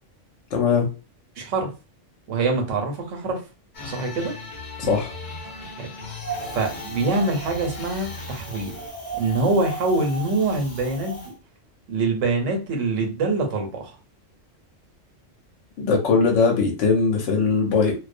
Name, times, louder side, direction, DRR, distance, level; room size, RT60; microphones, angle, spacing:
voice 1, 0.5-0.9 4.8-5.1 15.8-17.9, left 5 dB, 75° left, 2 dB, 1.0 m, -20 dB
voice 2, 1.4-1.7 2.3-3.4 3.8-4.3 5.8-5.9 6.5-8.7 9.1-11.3 11.9-14.0, right 3 dB, 90° right, 3 dB, 1.1 m, -24 dB
sound 1, 3.7-8.9, left 3 dB, 45° left, 0.7 m, -38 dB
Wind, 6.2-11.3, right 1 dB, 15° left, 0.8 m, -36 dB
2.3 x 2.1 x 2.5 m, 0.31 s
omnidirectional pair, 1.3 m